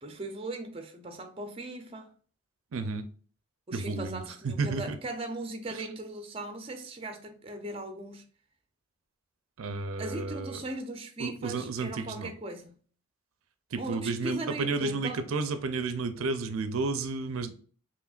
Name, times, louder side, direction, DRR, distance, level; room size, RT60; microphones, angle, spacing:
voice 1, 0.0-2.1 3.7-8.2 10.0-12.8 13.8-15.2, right 1 dB, 25° right, 0.5 m, -38 dB
voice 2, 2.7-3.1 3.7-5.0 5.8-5.9 9.6-10.6 11.2-12.3 13.7-17.5, right 4 dB, 80° right, 0.5 m, -32 dB
5.0 x 3.0 x 2.4 m
head